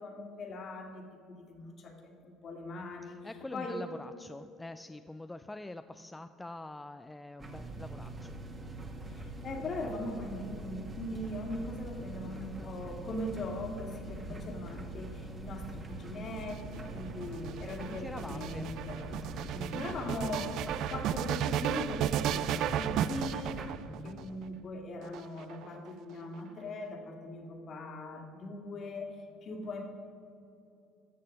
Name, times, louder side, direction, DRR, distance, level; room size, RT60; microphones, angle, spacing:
voice 1, 0.0-3.2 3.5-3.8 9.1-19.3 19.7-20.5 20.9-23.7 24.0-29.1 29.4-29.8, left 2 dB, 45° left, 3 dB, 2.0 m, -40 dB
voice 2, 3.0-8.9 12.3-12.8 14.3-14.7 17.5-18.7 19.4-20.2 20.6-20.7 23.9-24.3, left 2 dB, 10° left, 9 dB, 0.3 m, -46 dB
sound 1, 7.4-23.7, right 2 dB, 30° right, 1.5 m, -43 dB
sound 2, 16.3-24.2 25.0-25.9, right 10 dB, 65° right, 0.3 m, -34 dB
13.5 x 6.7 x 5.2 m, 2.7 s
supercardioid pair, 90°, 0 cm